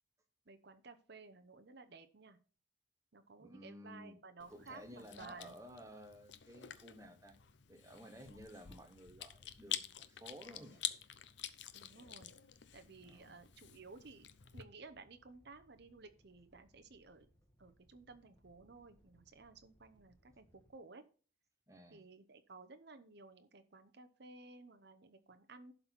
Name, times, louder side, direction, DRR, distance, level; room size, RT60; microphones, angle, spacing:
voice 1, 0.5-2.4 3.1-5.6 11.7-12.3 12.7-14.3 14.5-17.3 17.6-21.0 21.9-25.7, right 3 dB, 55° right, 0.7 m, -56 dB
voice 2, 3.4-4.2 4.5-7.4 7.7-10.8 13.0-13.4 21.7-22.0, equal, 15° right, 1.1 m, -54 dB
Chewing mastication, 4.4-14.6, left 11 dB, 60° left, 0.6 m, -48 dB
Animal, 12.5-20.7, equal, 10° left, 1.8 m, -71 dB
11.5 x 4.0 x 5.9 m
head